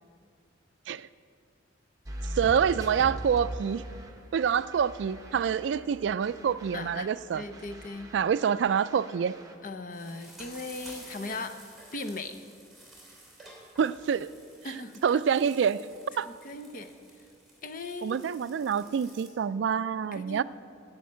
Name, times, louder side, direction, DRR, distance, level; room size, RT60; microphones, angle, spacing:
sound 1, 2.1-5.9 6.2-9.6, right 1 dB, 20° right, 1.0 m, -41 dB
voice 1, 2.4-3.8 4.3-7.4 8.1-9.4 13.8-14.3 15.0-15.8 16.2-16.3 18.0-20.4, right 7 dB, 70° right, 16 dB, 0.3 m, -26 dB
sound 2, 2.5-7.9, right 1 dB, 65° left, 1.5 m, -54 dB
voice 2, 6.7-8.1 9.6-11.6 11.9-12.4 14.6-15.2 16.3-16.9 17.6-18.2 20.1-20.4, left 3 dB, 45° left, 9 dB, 0.7 m, -38 dB
sound 3, 9.9-19.3, right 1 dB, ahead, 2.6 m, -52 dB
13.5 x 6.4 x 8.5 m, 2.4 s
head